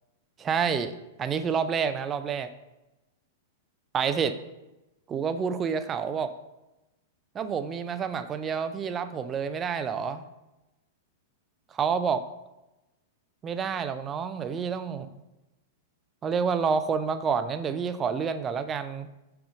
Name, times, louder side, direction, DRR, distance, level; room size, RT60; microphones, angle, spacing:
voice 1, 0.4-2.5 3.9-4.4 5.1-6.3 7.3-10.2 11.7-12.3 13.4-15.1 16.2-19.1, right 6 dB, 25° right, 10 dB, 0.5 m, -28 dB
6.1 x 3.6 x 5.0 m, 0.98 s
hypercardioid pair, 110°, 0 cm